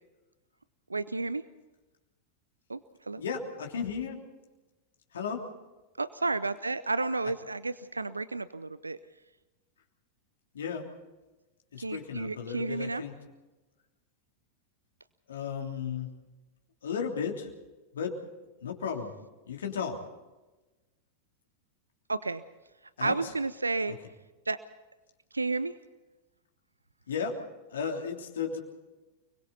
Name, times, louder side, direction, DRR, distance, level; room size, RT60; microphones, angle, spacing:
voice 1, 0.9-1.4 2.7-2.8 3.1-3.2 6.0-9.0 11.8-13.0 22.1-22.4 23.0-23.9 24.5-24.6 25.3-25.7, right 3 dB, 80° right, 16 dB, 0.6 m, -31 dB
voice 2, 3.2-4.2 5.1-5.4 10.5-10.9 11.7-13.2 15.3-16.1 16.8-17.5 17.9-18.2 18.6-19.1 19.5-20.0 23.0-23.1 27.1-27.4 27.7-28.6, left 6 dB, 65° left, 2 dB, 3.2 m, -34 dB
30.0 x 21.5 x 4.1 m, 1.1 s
figure-of-eight pair, 90°, 0 cm